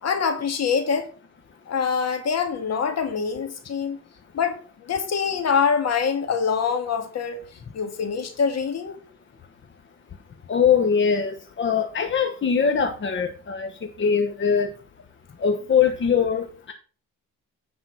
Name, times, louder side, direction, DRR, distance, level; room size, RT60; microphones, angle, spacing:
voice 1, 0.0-1.1 1.7-4.0 4.3-7.4 7.7-9.0, left 6 dB, 60° left, 2.0 m, -25 dB
voice 2, 10.5-13.7 14.0-14.7 15.4-16.7, left 6 dB, 40° left, 1.2 m, -22 dB
9.8 x 4.2 x 5.8 m
cardioid pair, 90°, 30 cm